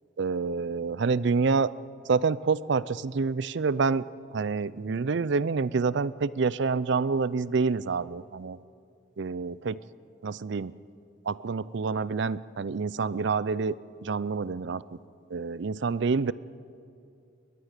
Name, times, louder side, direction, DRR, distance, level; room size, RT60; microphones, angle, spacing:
voice 1, 0.2-1.7 2.1-4.0 4.3-8.6 9.2-9.8 10.2-10.7 11.3-13.8 14.0-14.8 15.3-16.3, right 4 dB, 60° right, 19 dB, 0.5 m, -27 dB
22.0 x 19.0 x 6.7 m, 2.5 s
head